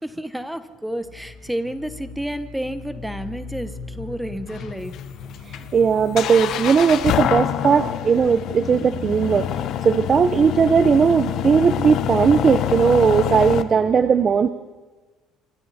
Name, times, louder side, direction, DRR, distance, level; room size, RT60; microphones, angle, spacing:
voice 1, 0.0-5.0, equal, ahead, 11 dB, 1.2 m, -30 dB
sound 1, 1.0-9.6, left 5 dB, 80° left, 4.3 m, -40 dB
sound 2, 4.5-13.6, left 11 dB, 50° left, 1.0 m, -26 dB
voice 2, 5.5-14.5, right 6 dB, 25° right, 13 dB, 0.7 m, -18 dB
27.5 x 24.5 x 4.2 m, 1.3 s
cardioid pair, 165°, 0 cm